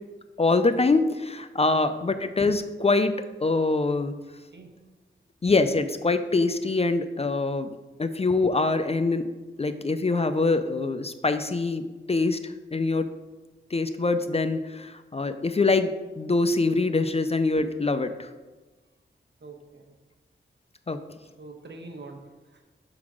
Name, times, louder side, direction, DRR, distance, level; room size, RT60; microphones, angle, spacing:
voice 1, 0.4-3.1 3.4-4.1 5.4-7.7 8.0-9.3 9.6-11.8 12.1-13.1 13.7-18.3 20.9-21.0, left 3 dB, 30° left, 10 dB, 0.4 m, -24 dB
voice 2, 4.3-4.7 19.4-20.0 21.4-22.6, right 3 dB, 60° right, 3 dB, 1.0 m, -45 dB
5.8 x 3.9 x 6.1 m, 1.2 s
wide cardioid pair, 65°, 20 cm